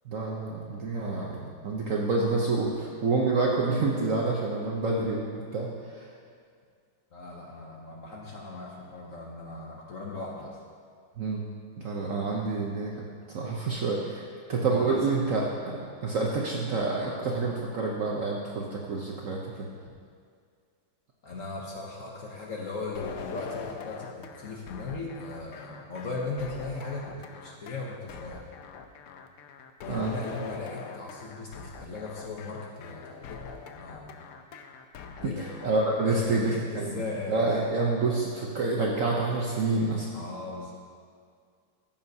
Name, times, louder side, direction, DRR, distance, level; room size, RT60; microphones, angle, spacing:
voice 1, 0.1-6.1 11.2-11.4 11.8-12.9 13.3-19.7 29.9-30.1 35.2-37.0 37.3-40.1, right 3 dB, 60° right, -2 dB, 0.9 m, -28 dB
voice 2, 7.1-10.6 14.6-15.0 21.2-28.4 29.8-34.2 35.2-35.5 36.0-37.4 40.1-40.7, left 3 dB, 55° left, -2 dB, 1.0 m, -38 dB
sound 1, 22.9-36.6, left 5 dB, 75° left, 0.8 m, -43 dB
14.0 x 7.2 x 2.8 m, 2.1 s
omnidirectional pair, 2.1 m